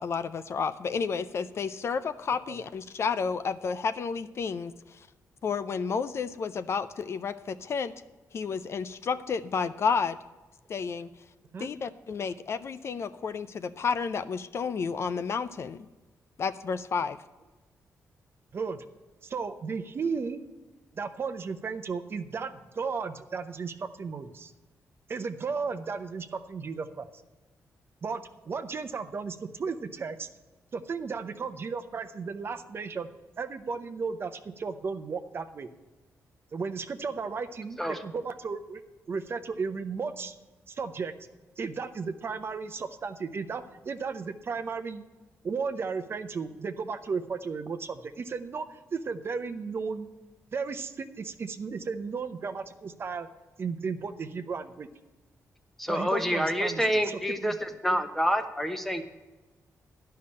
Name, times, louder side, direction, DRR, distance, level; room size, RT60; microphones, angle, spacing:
voice 1, 0.0-4.7 5.0-5.1 5.4-7.9 8.3-10.2 10.7-11.1 11.6-15.8 16.4-17.2, left 5 dB, 50° left, 11 dB, 0.5 m, -31 dB
voice 2, 18.5-18.8 19.2-20.4 21.0-24.5 25.1-27.1 28.0-30.3 30.7-33.1 33.4-35.7 36.5-38.8 39.1-40.4 40.7-41.1 41.6-45.0 45.4-50.1 50.5-53.3 53.6-54.9 55.9-57.6, right 5 dB, 45° right, 9 dB, 0.7 m, -34 dB
voice 3, 55.8-59.0, equal, 5° left, 7 dB, 1.0 m, -27 dB
11.5 x 5.7 x 8.6 m, 1.2 s
wide cardioid pair, 130°, 6 cm